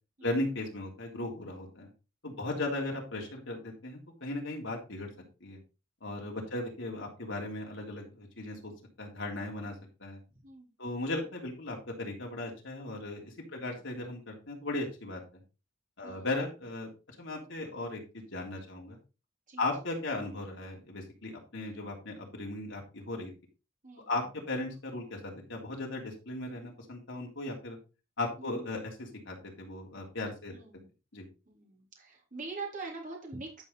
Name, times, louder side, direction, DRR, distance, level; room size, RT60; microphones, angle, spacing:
voice 1, 0.2-1.9 2.2-5.1 5.4-5.6 6.0-8.7 9.0-9.7 10.0-10.2 10.8-15.2 16.0-16.9 17.2-19.0 19.6-23.3 24.1-27.8 28.2-30.5 31.1-31.3, left 2 dB, 65° left, 0 dB, 3.1 m, -37 dB
voice 2, 10.4-11.2 13.5-13.9 16.0-16.3 19.5-19.7 23.8-24.2 28.4-28.7 30.5-30.9 31.5-33.6, right 3 dB, 40° right, 0 dB, 3.4 m, -44 dB
11.0 x 5.6 x 4.0 m, 0.31 s
head